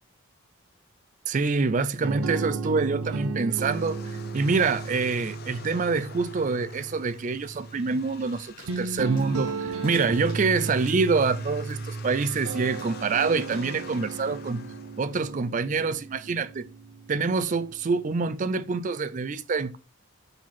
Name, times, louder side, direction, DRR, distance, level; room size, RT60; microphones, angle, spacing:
voice 1, 1.3-14.6 15.0-16.7 17.1-19.8, right 4 dB, 35° right, 0.4 m, -26 dB
sound 1, 2.0-18.2, right 4 dB, 85° right, 0.7 m, -35 dB
sound 2, 3.5-15.6, left 5 dB, 45° left, 0.6 m, -47 dB
sound 3, 8.6-14.3, left 1 dB, 20° left, 2.4 m, -53 dB
5.9 x 4.9 x 4.2 m
head